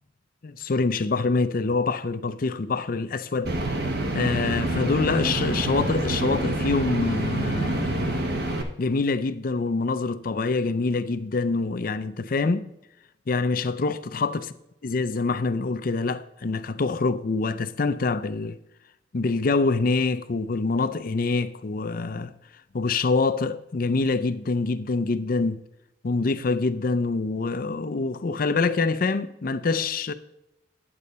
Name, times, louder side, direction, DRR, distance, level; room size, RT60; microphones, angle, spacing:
voice 1, 0.4-3.6 4.1-8.2 8.8-12.7 13.3-14.4 14.8-18.6 19.1-22.3 22.7-25.6 26.0-30.1, left 3 dB, 50° left, 0.5 m, -25 dB
sound 1, 3.4-8.6, right 1 dB, 55° right, 1.1 m, -27 dB
9.6 x 8.4 x 4.2 m
head